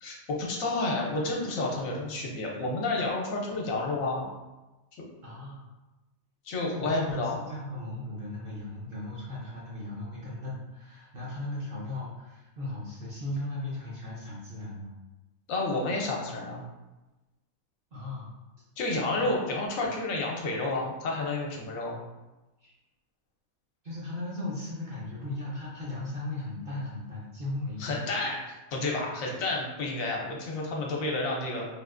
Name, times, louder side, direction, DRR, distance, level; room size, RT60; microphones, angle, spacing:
voice 1, 0.0-4.3 6.5-7.4 15.5-16.6 18.8-22.0 27.8-28.4 28.7-31.7, left 2 dB, 75° left, -1 dB, 1.0 m, -30 dB
voice 2, 5.2-5.7 6.7-14.9 17.9-18.3 19.1-19.3 19.8-19.9 22.6-22.7 23.8-28.0, left 2 dB, 50° right, -6 dB, 0.8 m, -37 dB
3.5 x 2.4 x 2.5 m, 1.0 s
omnidirectional pair, 1.5 m